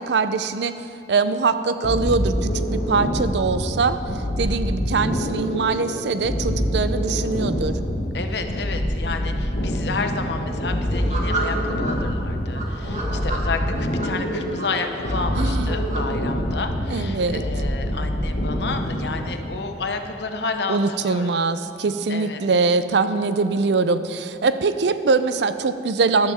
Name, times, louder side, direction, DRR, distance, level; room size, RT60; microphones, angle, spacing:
voice 1, 0.0-7.8 15.4-15.7 16.9-17.4 20.7-26.3, right 4 dB, 70° right, 12 dB, 0.5 m, -23 dB
sound 1, 1.8-19.4, equal, 85° left, 1.6 m, -26 dB
voice 2, 8.1-21.4 22.1-22.4, left 4 dB, 70° left, 6 dB, 0.9 m, -31 dB
sound 2, 10.9-11.9 12.5-14.1 14.6-16.0, right 3 dB, 45° right, 1.6 m, -31 dB
13.0 x 12.0 x 3.5 m, 2.6 s
head